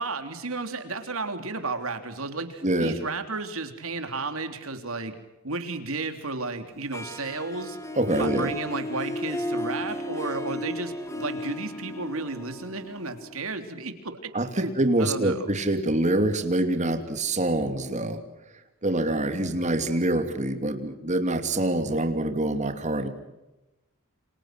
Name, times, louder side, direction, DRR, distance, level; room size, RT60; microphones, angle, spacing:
voice 1, 0.0-5.1 5.4-7.8 8.2-14.3 14.6-14.7 15.0-15.4 19.4-19.6, right 3 dB, 70° right, 7 dB, 3.4 m, -33 dB
voice 2, 2.6-3.0 7.9-8.5 14.3-18.2 18.8-23.1, right 1 dB, 35° right, 7 dB, 2.8 m, -25 dB
Harp, 6.9-13.8, left 1 dB, 15° left, 2.3 m, -34 dB
29.0 x 27.0 x 6.1 m, 0.99 s
head